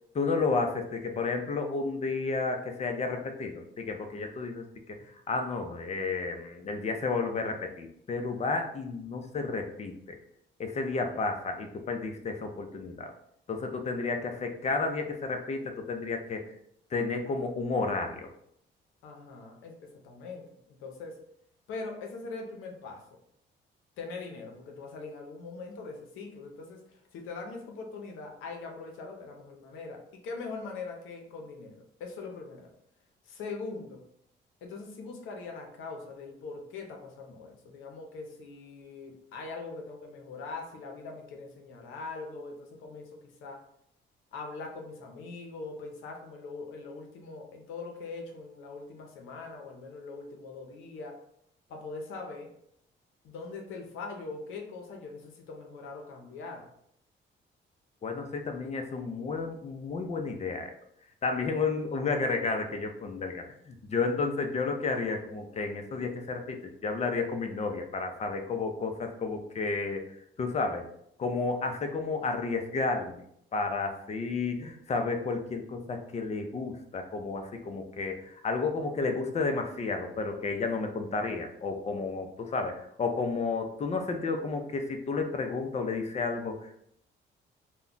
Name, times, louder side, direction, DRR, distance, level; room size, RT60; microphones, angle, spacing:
voice 1, 0.1-4.6 5.3-10.2 10.6-13.1 13.5-16.4 16.9-18.3 58.0-60.7 61.2-70.0 70.4-70.9 71.2-73.2 73.5-86.8, left 4 dB, 35° left, 5 dB, 0.5 m, -32 dB
voice 2, 19.0-21.2 21.7-23.0 24.0-32.7 33.2-34.0 34.6-43.6 44.3-51.2 51.7-52.5 53.2-56.7, left 3 dB, 85° left, 2 dB, 0.6 m, -42 dB
2.3 x 2.1 x 3.8 m, 0.71 s
cardioid pair, 90°, 20 cm